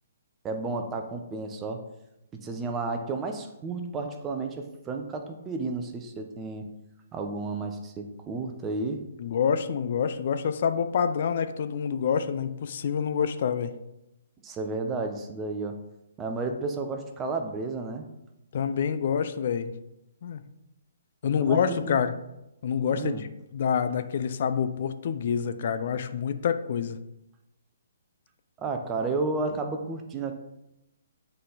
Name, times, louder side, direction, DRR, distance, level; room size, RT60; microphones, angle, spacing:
voice 1, 0.4-1.8 2.3-6.7 7.1-9.0 14.4-15.8 16.2-18.1 21.4-22.0 22.9-23.2 28.6-30.3, right 3 dB, 20° right, 4 dB, 0.9 m, -32 dB
voice 2, 9.2-13.7 18.5-19.7 20.2-20.4 21.2-22.1 22.6-27.0, left 7 dB, 50° left, 10 dB, 0.6 m, -27 dB
9.3 x 4.2 x 4.0 m, 0.89 s
figure-of-eight pair, 130°, 0 cm